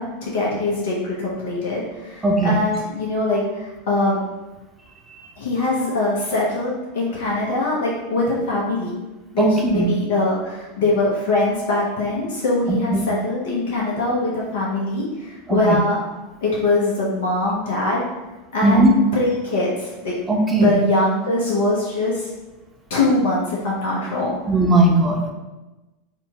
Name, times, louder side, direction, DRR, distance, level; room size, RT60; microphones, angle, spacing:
voice 1, 0.0-4.2 5.4-9.0 9.3-16.0 16.4-18.0 18.5-18.8 19.1-20.1 20.6-22.3 22.9-24.4, left 2 dB, 60° left, -5 dB, 1.1 m, -22 dB
voice 2, 2.2-2.6 9.4-9.9 12.7-13.0 15.5-15.8 18.6-18.9 20.3-20.7 24.5-25.3, right 2 dB, 15° right, 0 dB, 0.8 m, -17 dB
4.2 x 2.4 x 4.1 m, 1.1 s
figure-of-eight pair, 85°, 0 cm